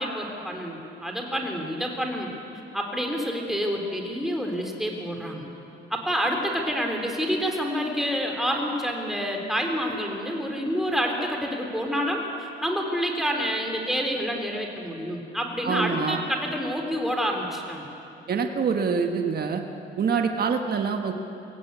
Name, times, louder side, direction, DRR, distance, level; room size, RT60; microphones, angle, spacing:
voice 1, 0.0-2.3 2.7-5.4 5.9-17.8, equal, ahead, 1 dB, 3.6 m, -28 dB
voice 2, 15.6-16.2 18.3-19.6 20.0-21.1, right 5 dB, 50° right, 5 dB, 1.5 m, -25 dB
23.5 x 17.0 x 8.3 m, 3.0 s
cardioid pair, 90°, 20 cm